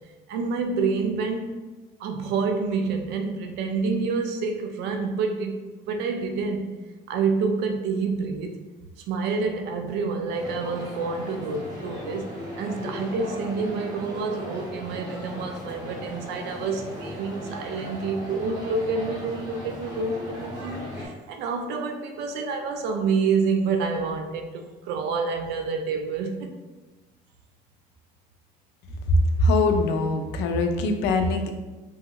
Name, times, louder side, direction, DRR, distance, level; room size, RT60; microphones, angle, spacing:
voice 1, 0.3-1.6 2.0-6.7 7.1-8.6 9.1-26.6, right 4 dB, 80° right, 5 dB, 0.4 m, -28 dB
sound 1, 10.3-21.1, equal, 20° right, 1.4 m, -37 dB
voice 2, 29.1-31.6, left 2 dB, 90° left, 5 dB, 0.4 m, -22 dB
2.8 x 2.7 x 2.3 m, 1.2 s
cardioid pair, 110°, 17 cm